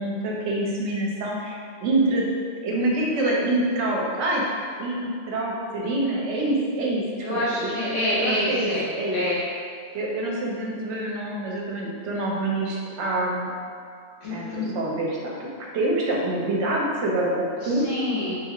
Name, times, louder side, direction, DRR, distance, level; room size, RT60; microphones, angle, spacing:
voice 1, 0.0-2.3 2.6-4.4 4.8-7.0 7.3-7.7 8.2-8.7 9.0-9.2 9.9-13.5 14.3-17.9, right 1 dB, 70° right, -3 dB, 0.9 m, -26 dB
voice 2, 7.2-8.8 9.1-9.4 14.2-14.8 17.6-18.3, left 1 dB, 60° left, -10 dB, 1.3 m, -26 dB
3.3 x 2.4 x 2.9 m, 2.2 s
omnidirectional pair, 1.3 m